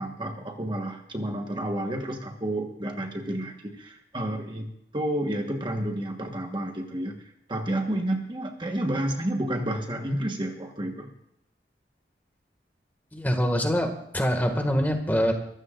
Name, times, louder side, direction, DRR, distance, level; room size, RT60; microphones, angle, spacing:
voice 1, 0.0-11.1, right 1 dB, 25° right, 3 dB, 1.3 m, -30 dB
voice 2, 13.1-15.3, equal, 10° left, 4 dB, 1.9 m, -24 dB
23.5 x 15.5 x 2.5 m, 0.76 s
head